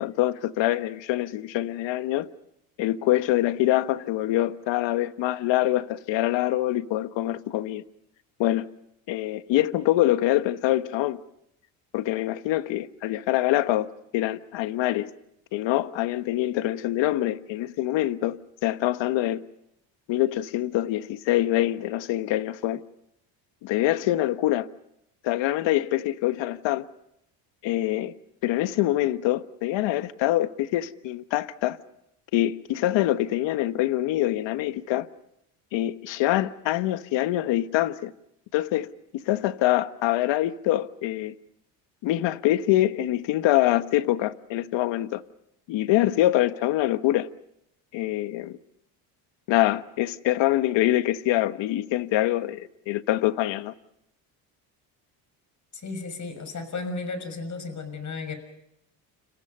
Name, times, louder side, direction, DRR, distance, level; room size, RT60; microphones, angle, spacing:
voice 1, 0.0-2.3 2.8-7.8 8.4-8.7 9.1-11.2 11.9-15.1 15.5-19.4 20.1-22.8 23.6-24.7 25.2-26.9 27.6-28.1 28.4-31.8 32.3-35.1 35.7-38.1 38.5-41.3 42.0-45.2 45.7-47.3 47.9-48.6 49.5-53.7, left 15 dB, 70° left, 1.3 m, -25 dB
voice 2, 55.7-58.4, left 3 dB, 40° left, 6.2 m, -34 dB
30.0 x 27.5 x 5.5 m
supercardioid pair, 90°, 46 cm